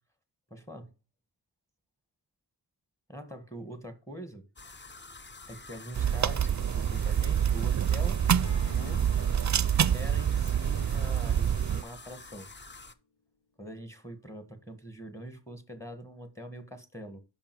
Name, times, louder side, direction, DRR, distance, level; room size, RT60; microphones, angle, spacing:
voice 1, 0.5-0.9 3.1-4.4 5.5-9.1 9.9-12.5 13.6-17.2, equal, 5° left, 1.7 m, -43 dB
sound 1, 4.6-12.9, left 3 dB, 25° left, 0.7 m, -48 dB
sound 2, 5.9-11.8, right 9 dB, 45° right, 0.4 m, -26 dB
Acoustic guitar / Strum, 8.4-12.6, left 5 dB, 75° left, 1.5 m, -51 dB
8.8 x 6.0 x 4.7 m
wide cardioid pair, 70°, 41 cm